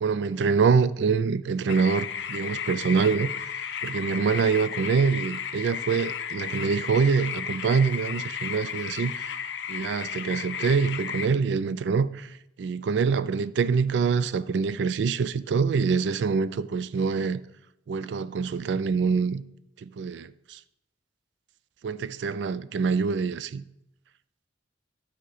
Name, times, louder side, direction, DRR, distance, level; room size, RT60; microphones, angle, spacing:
voice 1, 0.0-9.3 9.7-17.4 17.9-19.4 19.8-20.6 21.8-23.6, right 5 dB, 70° right, 0.3 m, -25 dB
sound 1, 1.7-11.3, left 8 dB, 70° left, 0.5 m, -34 dB
10.5 x 4.9 x 4.9 m
head